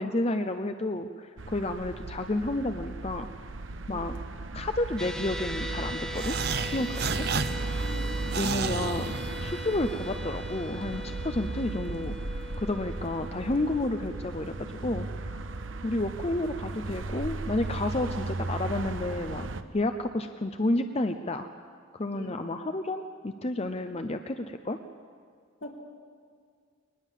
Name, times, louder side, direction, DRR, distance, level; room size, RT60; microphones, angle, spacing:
voice 1, 0.0-3.3 3.9-4.1 4.5-6.4 6.6-7.3 8.4-9.1 9.4-14.5 14.8-15.4 15.8-21.5 22.0-24.8, left 2 dB, 30° left, 8 dB, 0.7 m, -31 dB
sound 1, 1.4-19.6, right 3 dB, 85° right, 1.0 m, -36 dB
voice 2, 3.9-4.2 7.0-8.2 22.1-22.5 25.6-25.8, left 1 dB, 75° left, 0 dB, 3.4 m, -43 dB
sound 2, 5.0-17.3, left 1 dB, 5° left, 1.0 m, -42 dB
sound 3, 6.1-9.8, right 5 dB, 55° right, 0.8 m, -33 dB
21.5 x 20.0 x 7.5 m, 2.1 s
head